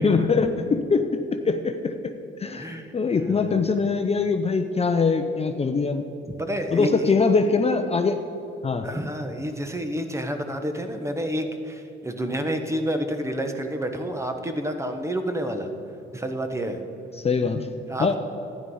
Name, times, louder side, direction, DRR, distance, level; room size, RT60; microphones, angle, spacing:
voice 1, 0.0-1.9 2.4-6.1 6.7-8.2 8.6-8.9 17.2-17.7 18.0-18.2, left 4 dB, 30° left, 7 dB, 0.6 m, -23 dB
voice 2, 2.6-3.6 6.3-7.1 8.8-15.7 16.1-16.8 17.9-18.2, equal, 15° right, 6 dB, 1.2 m, -29 dB
12.0 x 10.0 x 5.5 m, 3.0 s
cardioid pair, 90°, 20 cm